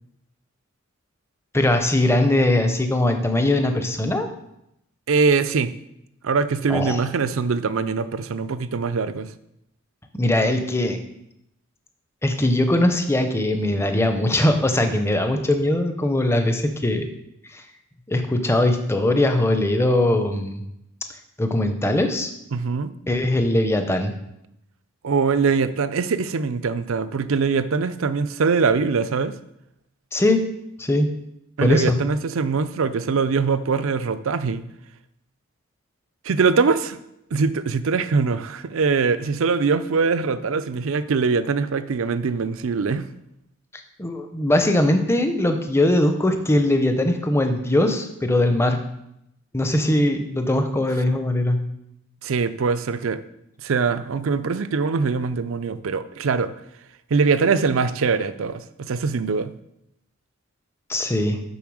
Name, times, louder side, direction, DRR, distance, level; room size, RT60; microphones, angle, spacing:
voice 1, 1.5-4.3 6.7-7.0 10.1-11.0 12.2-17.1 17.5-17.6 18.1-20.6 21.4-22.3 23.1-24.1 30.1-30.4 30.8-31.1 31.6-32.0 44.0-48.8 49.5-51.6 60.9-61.4, left 1 dB, 10° left, 6 dB, 0.6 m, -20 dB
voice 2, 5.1-5.7 6.2-9.3 22.5-22.9 25.0-29.4 31.6-34.6 36.2-37.0 37.3-43.0 52.2-53.2 53.6-56.5 57.1-59.5, right 5 dB, 70° right, 13 dB, 0.5 m, -22 dB
7.1 x 5.6 x 6.2 m, 0.82 s
head